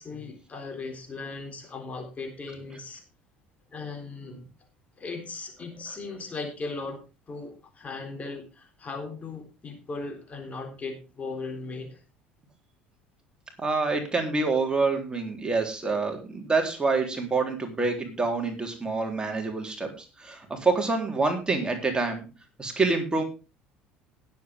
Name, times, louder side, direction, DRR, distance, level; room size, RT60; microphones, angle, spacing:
voice 1, 0.0-3.0 3.7-4.4 5.0-12.0, left 3 dB, 25° left, 4 dB, 3.8 m, -38 dB
voice 2, 13.6-22.2 22.6-23.2, right 3 dB, 15° right, 3 dB, 3.8 m, -27 dB
19.5 x 8.2 x 3.7 m, 0.31 s
figure-of-eight pair, 65°, 5 cm